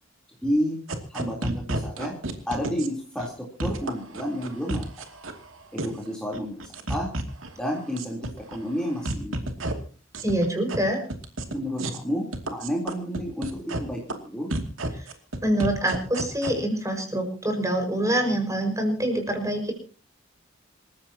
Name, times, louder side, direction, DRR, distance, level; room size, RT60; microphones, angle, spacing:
voice 1, 0.4-0.8 1.1-2.1 2.5-5.1 5.7-7.1 7.6-9.5 11.5-14.5, equal, 5° left, -2 dB, 3.6 m, -30 dB
sound 1, 0.9-2.9 3.2-3.3 3.6-5.4 5.8-6.1 6.3-7.5 7.8-8.6 8.9-9.7 10.1-10.8 11.1-11.5 11.8-12.0 12.3-13.8 14.1-14.2 14.5-16.5, right 2 dB, 90° right, 2.6 m, -30 dB
voice 2, 10.2-11.0 15.0-15.1 15.4-19.7, right 1 dB, 15° right, 4 dB, 5.3 m, -25 dB
27.5 x 15.0 x 2.9 m, 0.38 s
head